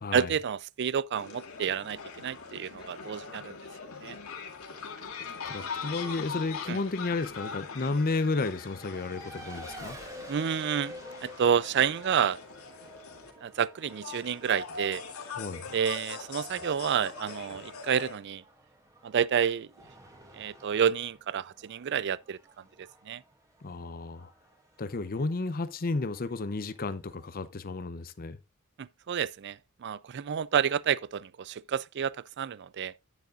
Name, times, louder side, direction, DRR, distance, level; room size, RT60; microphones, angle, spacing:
voice 1, 0.1-3.6 4.0-4.2 6.7-6.8 10.3-11.0 11.2-12.4 13.4-15.0 15.7-18.4 19.0-19.7 20.3-22.4 22.8-23.2 28.8-32.9, right 8 dB, 50° right, 0.4 m, -29 dB
sound 1, 1.1-13.3 13.8-18.2, left 5 dB, 75° left, 2.3 m, -42 dB
voice 2, 5.4-10.0 15.4-15.6 23.6-24.3 24.8-28.4, left 3 dB, 40° left, 0.6 m, -32 dB
Race car auto racing, 8.4-27.5, equal, 15° right, 2.2 m, -51 dB
10.5 x 9.4 x 2.5 m
head